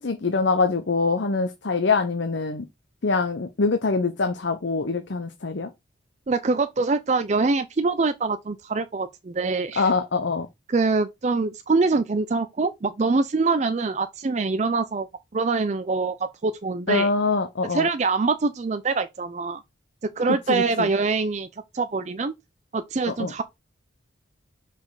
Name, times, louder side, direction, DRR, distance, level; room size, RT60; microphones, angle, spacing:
voice 1, 0.0-2.6 3.0-5.7 9.8-10.5 16.9-17.9 20.5-20.9 23.1-23.3, left 4 dB, 60° left, 0.7 m, -24 dB
voice 2, 6.3-9.9 10.7-15.1 15.3-17.1 17.7-19.6 20.2-21.5 21.7-22.3 22.7-23.4, right 4 dB, 35° right, 0.4 m, -24 dB
5.3 x 4.1 x 4.7 m
head